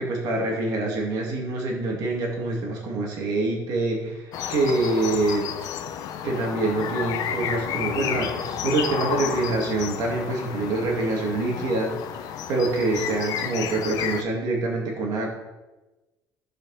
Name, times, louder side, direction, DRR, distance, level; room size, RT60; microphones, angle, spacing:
voice 1, 0.0-5.5 6.2-15.3, right 2 dB, 60° right, -1 dB, 2.3 m, -26 dB
sound 1, 4.3-14.2, left 8 dB, 60° left, 0.7 m, -31 dB
15.0 x 5.2 x 4.2 m, 1.1 s
cardioid pair, 140°, 7 cm